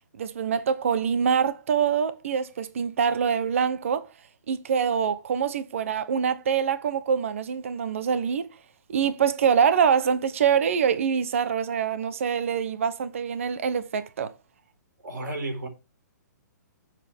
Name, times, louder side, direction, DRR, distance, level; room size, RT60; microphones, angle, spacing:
voice 1, 0.2-4.1 4.5-8.5 8.9-14.3, right 7 dB, 45° right, 1.0 m, -25 dB
voice 2, 15.0-15.7, right 2 dB, 70° right, 4.5 m, -32 dB
12.0 x 7.5 x 3.6 m
hypercardioid pair, 180°, 10 cm